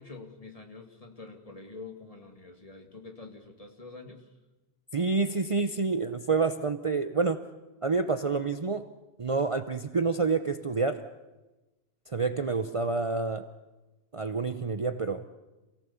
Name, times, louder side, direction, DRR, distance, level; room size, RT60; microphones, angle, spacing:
voice 1, 0.0-4.3, left 3 dB, 35° left, 3 dB, 2.4 m, -46 dB
voice 2, 4.9-7.4 7.8-8.9 9.2-11.0 12.1-13.5 14.1-15.2, right 4 dB, 35° right, 9 dB, 0.8 m, -28 dB
27.5 x 17.5 x 7.1 m, 1.1 s
omnidirectional pair, 1.1 m